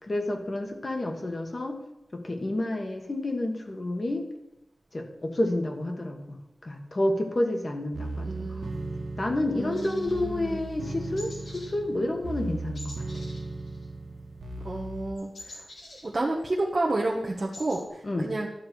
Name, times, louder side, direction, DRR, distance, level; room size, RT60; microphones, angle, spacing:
voice 1, 0.0-1.8 2.1-4.2 4.9-6.4 6.6-8.6 9.2-13.0 18.0-18.3, left 1 dB, 35° left, 3 dB, 1.6 m, -29 dB
sound 1, 7.9-15.1, right 2 dB, 75° right, 1.5 m, -37 dB
voice 2, 8.2-8.7 9.6-10.6 14.6-15.6 16.0-18.5, right 2 dB, 35° right, -3 dB, 1.1 m, -30 dB
sound 2, 9.7-10.9 11.2-11.8 12.0-12.3 12.7-14.3 14.5-16.6 17.0-17.1 17.3-17.8, left 1 dB, 75° left, 3.4 m, -47 dB
12.0 x 7.4 x 4.7 m, 0.89 s
wide cardioid pair, 105°, 0 cm